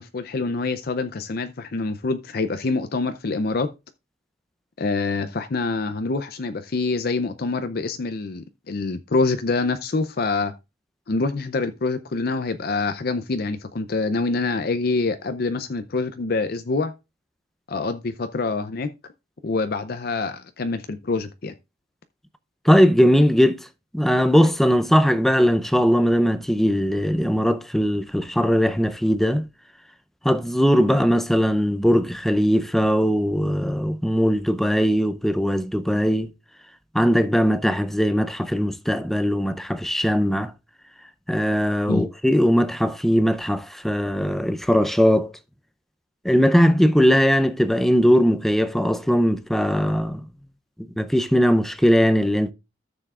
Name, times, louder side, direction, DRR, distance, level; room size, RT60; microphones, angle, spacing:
voice 1, 0.0-3.7 4.8-10.5 11.1-16.9 17.7-18.9 19.4-21.5 41.9-42.0, left 3 dB, 50° left, 0.5 m, -26 dB
voice 2, 22.6-23.7 23.9-29.4 30.2-36.3 36.9-40.5 41.3-45.3 46.2-50.2 51.0-52.5, equal, ahead, 0.5 m, -19 dB
13.5 x 6.9 x 2.4 m
head